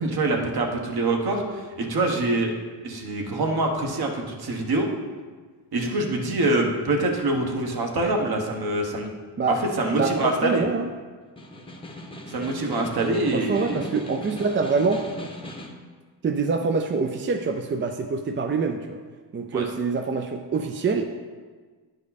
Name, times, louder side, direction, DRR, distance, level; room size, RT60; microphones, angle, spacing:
voice 1, 0.0-2.5 2.8-4.9 5.7-9.1 9.8-10.6 12.3-13.8 19.5-19.7, right 2 dB, 55° right, 2 dB, 1.4 m, -25 dB
voice 2, 9.9-10.9 13.3-15.0 16.2-19.0 19.3-21.1, right 4 dB, 25° right, 4 dB, 0.4 m, -25 dB
Snare drum, 11.2-15.9, left 1 dB, 10° left, 0.8 m, -39 dB
10.0 x 5.3 x 4.1 m, 1.5 s
cardioid pair, 120°, 44 cm